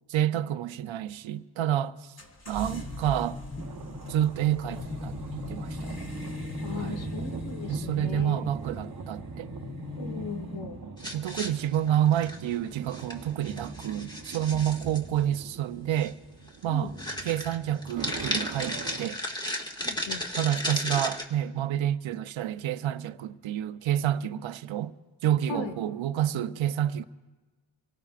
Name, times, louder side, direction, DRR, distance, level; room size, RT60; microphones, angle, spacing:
voice 1, 0.1-2.1 2.5-3.4 4.1-5.9 6.7-7.0 7.7-9.5 11.1-16.2 16.6-16.9 17.2-19.2 20.4-24.9 25.2-27.0, right 11 dB, 75° right, 0.7 m, -29 dB
sound 1, 2.2-14.3, left 2 dB, 30° left, 2.0 m, -39 dB
sound 2, 3.6-19.1, right 6 dB, 40° right, 0.9 m, -43 dB
voice 2, 6.6-8.8 10.0-10.8 16.7-16.9 19.8-20.3 25.5-25.7, left 4 dB, 65° left, 1.9 m, -38 dB
sound 3, 11.0-12.6 12.9-13.2 13.4-15.0 16.0-16.1 16.5-16.6 17.0-21.3, left 1 dB, 10° left, 1.9 m, -34 dB
25.5 x 18.0 x 2.5 m
cardioid pair, 75°, 47 cm